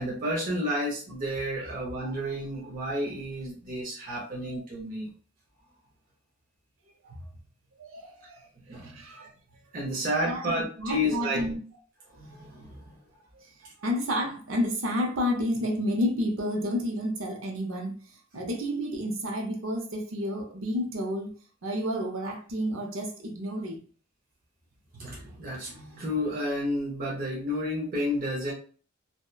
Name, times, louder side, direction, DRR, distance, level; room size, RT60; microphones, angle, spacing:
voice 1, 0.0-5.1 8.7-9.3 9.7-11.5 12.1-13.0 24.9-28.5, equal, 45° right, 0.6 m, -31 dB
voice 2, 7.8-8.5 8.8-9.6 10.2-11.6 13.3-21.3 21.6-23.8, equal, 90° right, 0.7 m, -31 dB
2.7 x 2.1 x 2.2 m
head